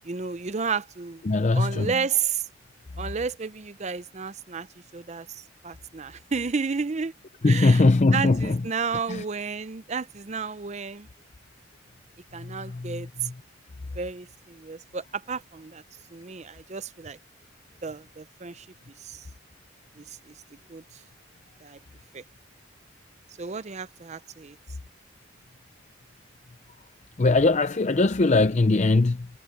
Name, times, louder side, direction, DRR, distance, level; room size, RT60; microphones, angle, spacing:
voice 1, 0.0-1.2 1.5-2.4 3.0-4.7 4.9-7.1 7.4-11.1 12.3-13.1 14.0-15.8 16.1-17.2 17.8-18.7 19.0-19.2 20.0-20.3 20.7-20.8 21.6-21.8 22.1-22.2 23.4-24.6, right 5 dB, 35° right, 0.6 m, -32 dB
voice 2, 1.2-1.9 7.4-8.6 9.1-9.2 12.4-13.3 27.2-29.3, left 3 dB, 35° left, 0.5 m, -21 dB
head